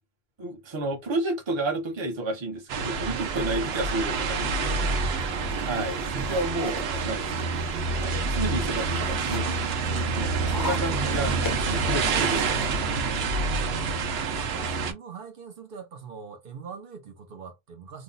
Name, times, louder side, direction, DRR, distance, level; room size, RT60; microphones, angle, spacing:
voice 1, 0.4-4.8 5.6-7.6 8.0-9.6 10.0-12.8 13.6-13.7, right 2 dB, 30° right, 0.7 m, -31 dB
sound 1, 2.7-14.9, right 4 dB, 90° right, 0.9 m, -27 dB
voice 2, 3.0-3.3 4.8-5.7 14.3-18.0, right 6 dB, 65° right, 0.8 m, -43 dB
sound 2, 4.9-12.7, left 3 dB, 35° left, 0.3 m, -42 dB
2.6 x 2.0 x 3.8 m
omnidirectional pair, 1.0 m